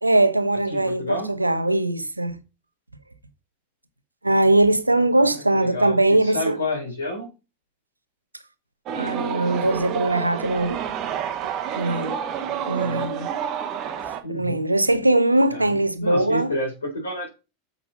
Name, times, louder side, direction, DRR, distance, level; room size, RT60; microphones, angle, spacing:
voice 1, 0.0-2.4 4.2-6.6 9.0-10.8 11.8-12.1 12.7-13.3 14.3-16.5, right 2 dB, 85° right, 0.9 m, -21 dB
voice 2, 0.7-1.3 5.3-6.0 6.2-7.3 12.8-13.1 14.2-14.6 15.5-17.3, left 1 dB, 75° left, 3.9 m, -30 dB
sound 1, 8.9-14.2, right 9 dB, 40° right, 1.2 m, -29 dB
7.5 x 5.8 x 5.3 m
figure-of-eight pair, 85°, 0 cm